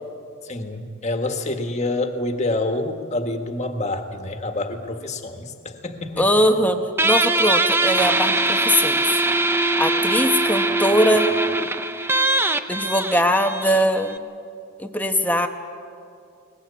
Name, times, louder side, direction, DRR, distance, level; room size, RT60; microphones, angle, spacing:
voice 1, 0.4-6.3, left 2 dB, 30° left, 5 dB, 1.6 m, -27 dB
voice 2, 6.2-9.0 9.8-11.3 12.7-14.2 14.8-15.5, equal, 5° left, 5 dB, 1.0 m, -21 dB
Guitar, 7.0-14.2, right 2 dB, 10° right, 0.6 m, -21 dB
22.5 x 20.0 x 8.5 m, 2.4 s
head